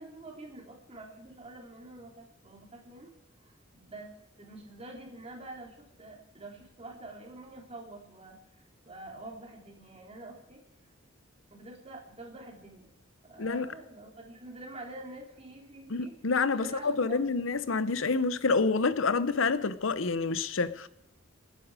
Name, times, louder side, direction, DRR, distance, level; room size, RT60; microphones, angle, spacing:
voice 1, 0.0-3.1 3.4-10.6 11.5-12.9 13.2-16.1 16.5-17.4, right 2 dB, 30° right, 3.4 m, -47 dB
voice 2, 15.9-20.9, left 4 dB, 85° left, 0.8 m, -28 dB
27.5 x 10.0 x 4.9 m
head